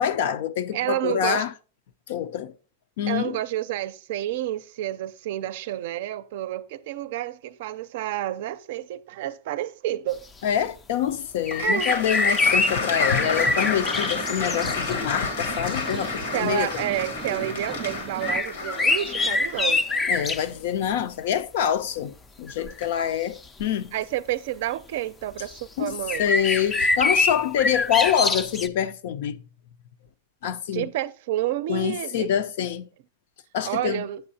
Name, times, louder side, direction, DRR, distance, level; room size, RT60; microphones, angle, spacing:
voice 1, 0.0-1.5 2.1-2.5 3.0-3.4 10.4-16.8 20.1-23.9 25.8-29.4 30.4-30.9 31.7-32.8 33.5-34.1, left 9 dB, 65° left, 0.5 m, -26 dB
voice 2, 0.7-1.5 3.1-10.2 11.6-12.0 16.3-19.9 23.9-26.3 30.7-32.3 33.6-34.2, right 13 dB, 60° right, 0.5 m, -29 dB
Applause, 11.5-20.4, left 4 dB, 85° left, 1.4 m, -31 dB
sound 1, 11.5-14.9 15.7-15.8 18.2-20.4 22.5-22.9 23.6-23.7 25.5-25.6 26.1-28.7, left 3 dB, 15° left, 0.4 m, -24 dB
sound 2, 12.4-18.4, right 5 dB, 15° right, 0.7 m, -38 dB
7.7 x 7.7 x 2.7 m
supercardioid pair, 145°, 0 cm